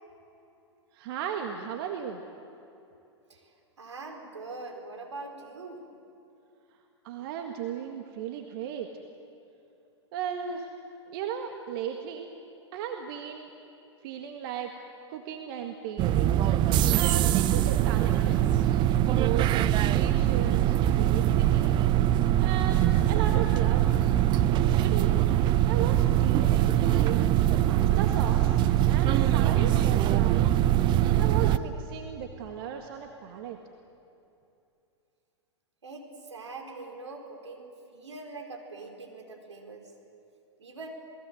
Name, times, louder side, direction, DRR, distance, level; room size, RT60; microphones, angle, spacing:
voice 1, 0.9-2.2 7.0-8.9 10.1-10.7 11.1-12.3 12.7-13.5 14.0-14.7 15.1-16.4 16.9-18.4 19.1-21.8 22.4-23.9 24.5-25.1 25.7-27.2 27.7-28.6 28.9-30.5 31.2-33.6, right 8 dB, 50° right, 4 dB, 1.9 m, -36 dB
voice 2, 3.8-5.9 35.8-39.9 40.6-40.9, right 3 dB, 80° right, 3 dB, 4.6 m, -42 dB
sound 1, 16.0-31.6, right 12 dB, 30° right, 0.8 m, -23 dB
28.0 x 20.0 x 8.0 m, 2.7 s
figure-of-eight pair, 105°, 15 cm